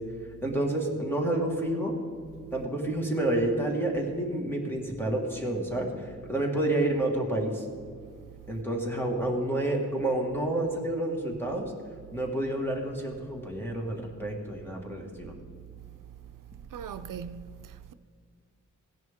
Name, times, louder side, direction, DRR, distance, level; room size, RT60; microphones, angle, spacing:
voice 1, 0.4-1.9 2.5-7.6 8.5-11.7 12.1-15.3, right 1 dB, 5° left, 1.8 m, -29 dB
voice 2, 16.7-17.9, right 7 dB, 80° right, 0.5 m, -40 dB
16.5 x 10.5 x 3.6 m
wide cardioid pair, 145°, 31 cm